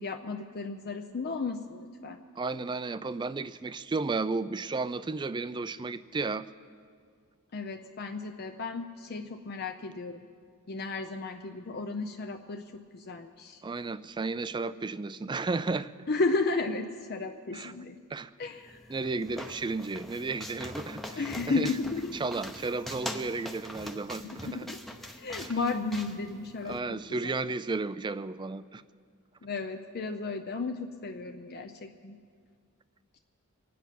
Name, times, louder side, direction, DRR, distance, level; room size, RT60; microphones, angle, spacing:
voice 1, 0.0-2.2 7.5-10.2 10.7-12.6 12.9-13.6 16.1-18.0 18.4-18.8 21.2-22.1 24.2-24.8 25.0-26.8 27.2-27.3 29.4-32.2, left 3 dB, 45° left, 5 dB, 0.6 m, -33 dB
voice 2, 2.4-6.5 13.6-15.9 17.5-17.7 18.1-18.3 18.9-21.7 22.2-24.7 25.4-25.5 26.6-28.8, right 3 dB, 20° right, 15 dB, 0.3 m, -33 dB
sound 1, 18.6-26.8, left 1 dB, ahead, 0.7 m, -42 dB
25.0 x 9.3 x 5.8 m, 2.1 s
head